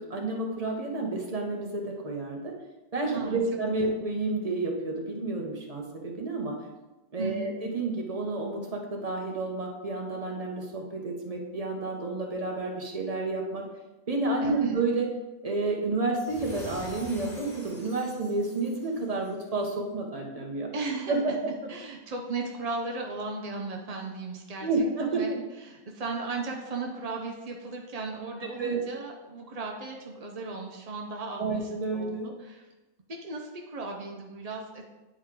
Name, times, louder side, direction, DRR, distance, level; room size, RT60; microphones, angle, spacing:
voice 1, 0.0-2.5 2.9-6.6 7.1-13.6 14.1-15.1 15.4-20.7 21.1-21.5 24.6-25.4 28.5-28.8 31.4-32.3, right 3 dB, 25° right, 0 dB, 0.9 m, -30 dB
voice 2, 7.2-7.5 14.4-14.8 20.7-21.3 21.7-32.7 33.2-34.9, right 3 dB, 65° right, 0 dB, 0.3 m, -36 dB
sound 1, 16.1-19.5, left 1 dB, 40° left, 2.1 m, -45 dB
9.6 x 4.5 x 3.8 m, 1.1 s
omnidirectional pair, 1.8 m